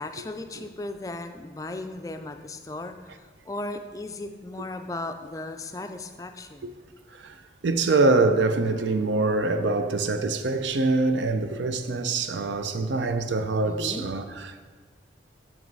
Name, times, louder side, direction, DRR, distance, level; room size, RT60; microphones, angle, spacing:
voice 1, 0.0-6.7 13.6-14.1, left 2 dB, 20° left, 0.3 m, -36 dB
voice 2, 7.6-14.6, right 3 dB, 85° right, 0.5 m, -24 dB
7.7 x 6.3 x 4.0 m
head